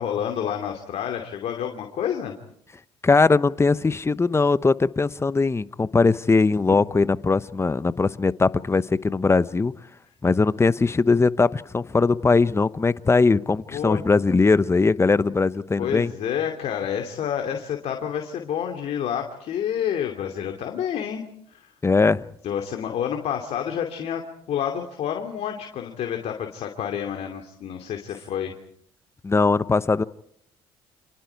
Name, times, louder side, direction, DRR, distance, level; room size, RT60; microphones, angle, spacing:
voice 1, 0.0-2.3 13.7-14.0 15.8-21.2 21.5-21.7 22.4-24.2 24.5-28.5, left 9 dB, 60° left, 2.8 m, -29 dB
voice 2, 3.0-9.7 10.2-16.1 21.8-22.3 29.2-30.0, left 4 dB, 20° left, 0.9 m, -20 dB
30.0 x 27.0 x 4.7 m
hypercardioid pair, 60°, 12 cm